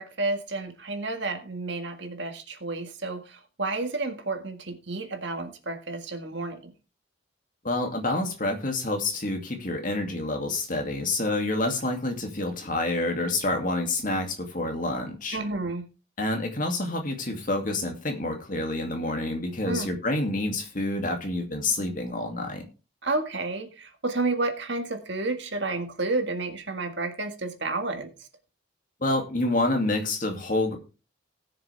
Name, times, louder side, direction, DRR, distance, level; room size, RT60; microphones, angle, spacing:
voice 1, 0.0-6.7 15.3-15.9 19.7-19.9 23.0-28.1, right 3 dB, 60° right, 5 dB, 1.8 m, -31 dB
voice 2, 7.6-15.4 16.2-22.6 29.0-30.8, left 2 dB, 40° left, 3 dB, 2.4 m, -28 dB
19.0 x 6.8 x 3.4 m, 0.32 s
head